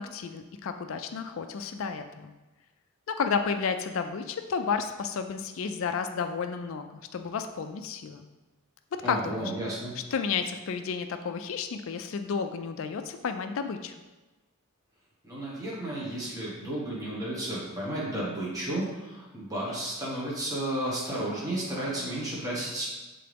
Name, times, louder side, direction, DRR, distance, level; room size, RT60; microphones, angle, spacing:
voice 1, 0.0-2.3 3.1-8.2 8.9-9.5 10.0-13.9, left 5 dB, 60° left, 7 dB, 0.4 m, -32 dB
voice 2, 9.0-9.9 15.2-22.8, right 1 dB, 15° right, -6 dB, 1.2 m, -33 dB
7.7 x 3.9 x 3.4 m, 1.2 s
head